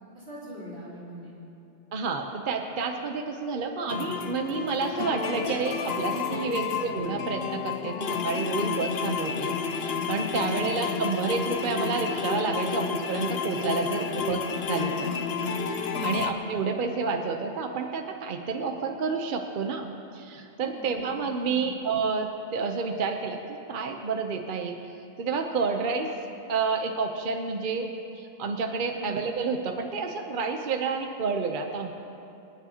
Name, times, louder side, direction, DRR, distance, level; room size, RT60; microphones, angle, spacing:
voice 1, 0.1-1.4 6.4-6.7 10.4-10.7 15.8-16.2 20.7-21.1 21.4-21.7 28.9-29.1, equal, 70° right, -9 dB, 4.1 m, -42 dB
voice 2, 1.9-14.4 14.7-15.1 16.0-24.8 25.2-26.1 26.5-27.9 28.1-31.9, right 4 dB, 55° right, 4 dB, 0.9 m, -29 dB
sound 1, 3.9-16.3, left 6 dB, 75° left, 1.0 m, -31 dB
27.5 x 9.8 x 2.8 m, 2.8 s
omnidirectional pair, 1.0 m